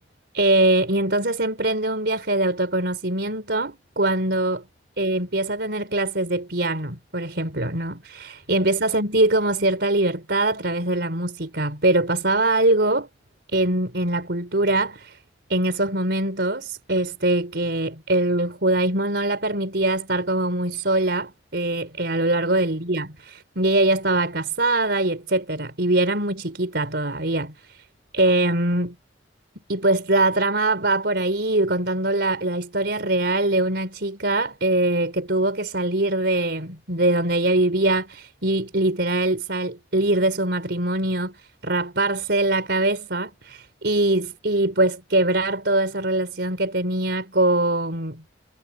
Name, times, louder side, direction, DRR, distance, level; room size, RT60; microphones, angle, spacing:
voice 1, 0.3-4.6 5.0-13.1 13.5-15.2 15.5-27.8 28.1-28.9 29.7-41.3 41.6-48.2, right 2 dB, 65° right, 4.7 m, -23 dB
head